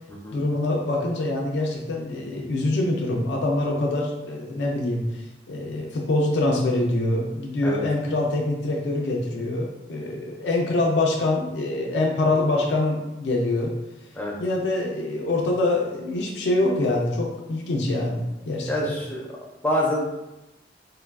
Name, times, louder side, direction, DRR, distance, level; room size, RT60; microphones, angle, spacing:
voice 1, 0.3-5.2 5.5-13.7 14.4-18.7, left 2 dB, 80° left, -1 dB, 0.4 m, -25 dB
voice 2, 18.7-19.3 19.6-20.0, left 1 dB, 10° left, -3 dB, 0.4 m, -26 dB
3.2 x 2.2 x 2.3 m, 0.96 s
head